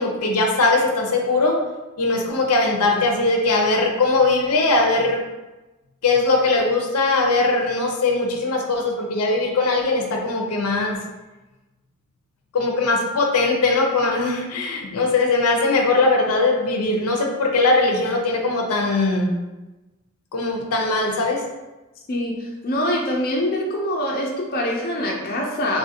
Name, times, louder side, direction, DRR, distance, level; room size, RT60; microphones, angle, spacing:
voice 1, 0.0-1.5 2.0-5.2 6.0-11.0 12.5-19.3 20.3-21.4, left 3 dB, 85° left, 1 dB, 0.6 m, -20 dB
voice 2, 22.1-25.8, left 1 dB, 40° left, -1 dB, 0.4 m, -24 dB
3.6 x 2.4 x 2.7 m, 1.1 s
head